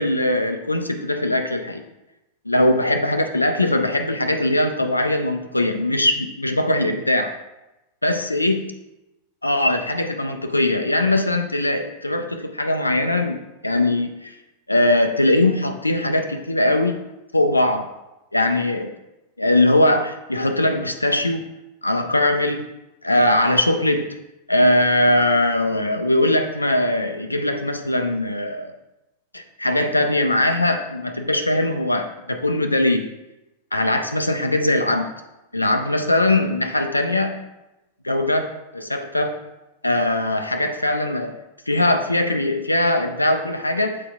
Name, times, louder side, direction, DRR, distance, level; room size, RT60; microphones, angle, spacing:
voice 1, 0.0-1.8 2.5-7.3 8.0-8.6 9.4-13.4 13.6-14.4 14.7-17.0 17.3-17.9 18.3-18.9 19.4-21.5 21.8-22.7 23.0-24.1 24.5-28.7 29.3-33.1 33.7-35.1 35.5-37.4 38.0-38.5 38.7-39.4 39.8-41.3 41.7-44.0, left 1 dB, 85° left, 5 dB, 0.4 m, -20 dB
7.3 x 4.2 x 3.5 m, 0.96 s
figure-of-eight pair, 90°, 0 cm